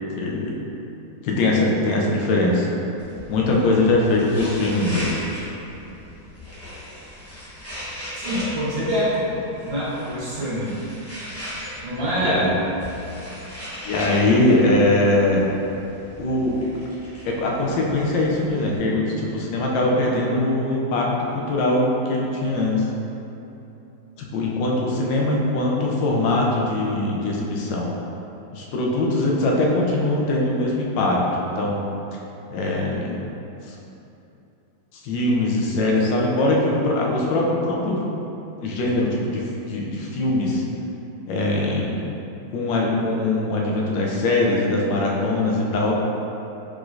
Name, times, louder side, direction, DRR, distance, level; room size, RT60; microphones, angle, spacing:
voice 1, 0.2-0.6 1.2-2.7 3.3-5.3 12.2-12.5 13.8-15.4 16.2-16.6 17.2-22.8 24.3-27.9 28.5-31.8 32.5-33.2 33.7-33.8 35.0-38.0 38.6-40.6 41.3-42.0 42.5-46.0, left 2 dB, 75° left, -2 dB, 1.3 m, -21 dB
sound 1, 3.0-18.8, left 1 dB, 15° left, 0.4 m, -38 dB
voice 2, 8.1-9.3 9.6-10.7 11.8-12.5, equal, 85° right, -9 dB, 2.0 m, -25 dB
4.9 x 3.7 x 2.5 m, 2.9 s
omnidirectional pair, 2.1 m